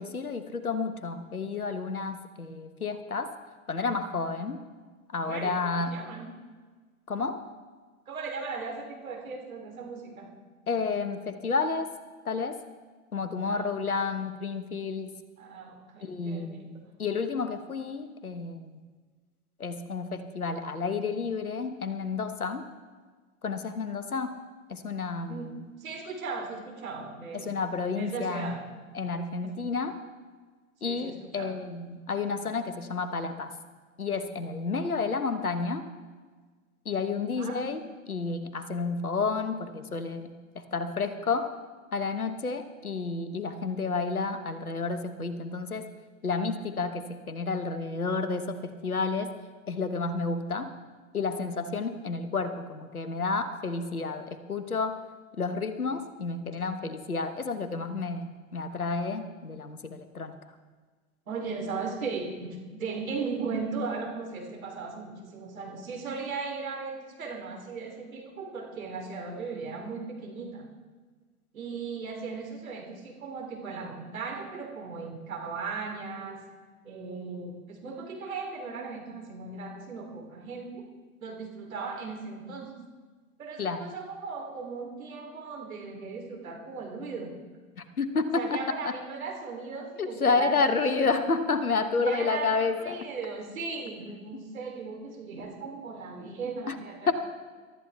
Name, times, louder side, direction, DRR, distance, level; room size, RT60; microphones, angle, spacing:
voice 1, 0.0-3.3 3.7-4.6 5.1-5.9 7.1-7.4 10.7-11.9 12.2-12.6 13.1-15.1 16.0-18.8 19.6-22.6 23.4-24.3 24.7-25.5 27.3-28.5 28.9-30.0 30.8-33.5 34.0-35.8 36.8-37.8 38.1-41.5 41.9-45.9 46.2-49.3 49.7-50.7 51.1-55.0 55.4-60.4 83.6-83.8 87.8-88.6 88.8-88.9 90.0-93.0 96.7-96.8 97.1-97.2, left 4 dB, 90° left, 10 dB, 1.3 m, -30 dB
voice 2, 5.2-6.3 8.0-10.3 13.4-13.8 15.4-16.6 25.3-25.5 25.8-27.6 28.0-28.6 29.4-29.5 30.8-31.5 37.4-37.6 61.3-70.7 71.5-76.4 76.8-80.8 81.2-82.8 83.4-87.3 88.3-91.1 92.0-97.1, right 4 dB, 75° right, 1 dB, 3.4 m, -37 dB
23.0 x 13.0 x 3.4 m, 1.4 s
figure-of-eight pair, 95°, 42 cm